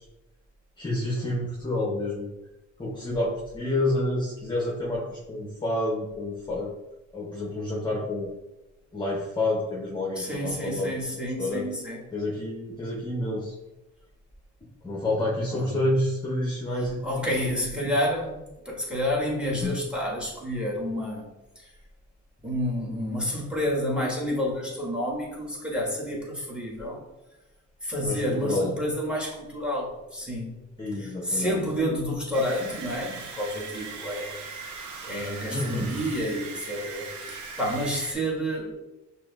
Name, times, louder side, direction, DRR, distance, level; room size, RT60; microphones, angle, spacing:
voice 1, 0.8-2.3 2.8-6.7 7.1-8.3 8.9-11.0 11.4-11.7 12.1-13.5 14.6-17.9 19.6-19.8 28.0-28.7 30.8-31.6 35.5-35.9, left 1 dB, 15° left, -2 dB, 0.7 m, -29 dB
voice 2, 10.2-12.0 15.5-15.8 16.8-21.3 21.5-21.7 22.4-27.0 27.8-30.6 31.0-34.3 34.6-38.7, equal, 5° right, -3 dB, 1.4 m, -30 dB
sound 1, 32.3-38.1, right 4 dB, 75° right, 0.8 m, -39 dB
5.9 x 2.6 x 2.3 m, 1.0 s
cardioid pair, 90°, 30 cm